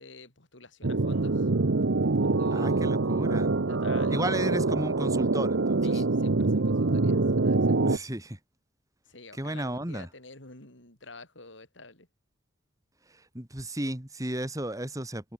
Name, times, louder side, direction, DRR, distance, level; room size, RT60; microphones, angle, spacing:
voice 1, 0.0-1.5 2.2-3.0 3.7-4.4 5.8-7.8 9.1-12.1, left 3 dB, 75° left, 5.9 m, -49 dB
sound 1, 0.8-8.0, right 3 dB, 75° right, 0.9 m, -25 dB
voice 2, 2.5-3.5 4.1-6.0 7.8-8.4 9.3-10.1 13.1-15.3, right 1 dB, 15° right, 2.5 m, -33 dB
head